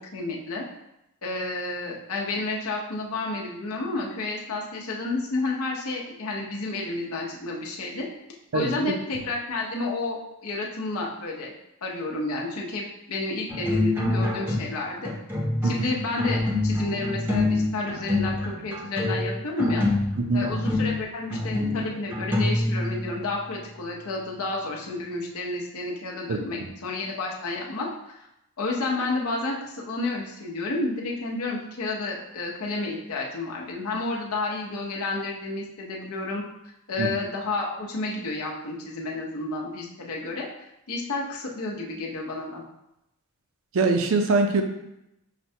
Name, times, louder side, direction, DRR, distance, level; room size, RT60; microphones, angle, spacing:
voice 1, 0.1-0.7 1.2-8.1 8.5-11.5 11.8-15.1 15.6-19.9 20.3-27.9 28.6-36.4 36.9-40.5 40.9-42.6, left 2 dB, 75° left, -2 dB, 0.8 m, -30 dB
sound 1, 13.5-14.8 15.0-23.2, left 2 dB, 10° right, 0.6 m, -26 dB
voice 2, 43.7-44.6, right 3 dB, 65° right, 5 dB, 0.5 m, -22 dB
5.7 x 2.2 x 2.7 m, 0.84 s
head